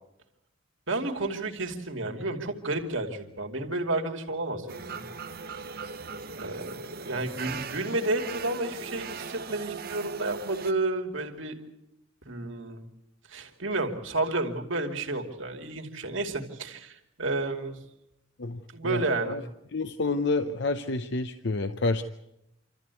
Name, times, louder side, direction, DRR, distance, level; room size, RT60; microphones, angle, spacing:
voice 1, 0.9-5.0 6.4-11.6 12.2-12.8 13.3-17.8 18.7-19.4, right 2 dB, 70° right, 3 dB, 2.6 m, -31 dB
sound 1, 4.7-10.7, right 5 dB, 50° right, 0.9 m, -39 dB
voice 2, 18.4-19.4 19.7-22.0, left 3 dB, 60° left, 9 dB, 0.8 m, -29 dB
27.0 x 14.0 x 8.3 m, 0.87 s
head